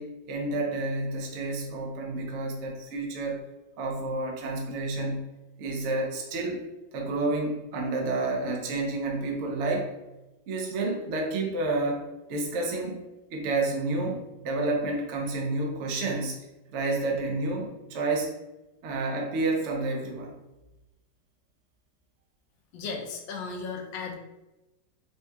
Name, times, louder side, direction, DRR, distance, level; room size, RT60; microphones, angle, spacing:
voice 1, 0.0-3.4 3.8-5.3 5.6-6.6 6.9-9.9 10.5-12.0 12.3-13.0 13.3-16.4 16.7-18.3 18.8-20.3, right 2 dB, 70° right, 0 dB, 0.7 m, -30 dB
voice 2, 22.7-24.1, left 4 dB, 85° left, 2 dB, 1.3 m, -35 dB
4.1 x 2.7 x 2.3 m, 1.0 s
omnidirectional pair, 1.9 m